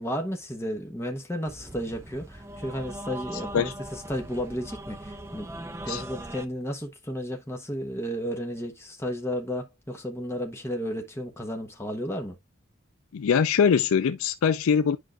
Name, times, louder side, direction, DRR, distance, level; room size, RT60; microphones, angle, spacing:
voice 1, 0.0-12.4, equal, 10° left, 1.0 m, -33 dB
sound 1, 1.5-6.5, right 1 dB, 15° right, 0.5 m, -40 dB
voice 2, 3.3-3.7 5.9-6.0 13.1-15.0, left 7 dB, 90° left, 0.4 m, -23 dB
10.0 x 4.7 x 2.4 m
head